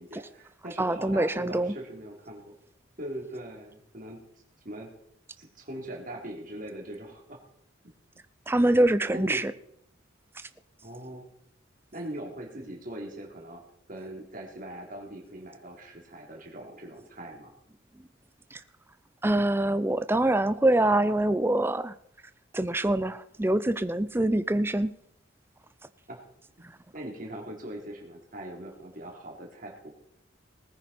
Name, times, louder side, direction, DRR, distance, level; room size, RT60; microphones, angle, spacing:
voice 1, 0.0-2.5 3.0-4.2 4.6-4.9 5.4-7.4 8.8-9.4 10.8-11.3 11.9-13.6 13.9-17.5 26.1-26.2 26.9-29.9, right 1 dB, 45° right, 0 dB, 3.2 m, -41 dB
voice 2, 0.8-1.7 8.5-9.5 18.5-18.6 19.2-21.9 22.5-24.9 26.6-26.7, right 1 dB, 10° right, 13 dB, 0.5 m, -25 dB
20.0 x 9.7 x 4.3 m, 0.73 s
head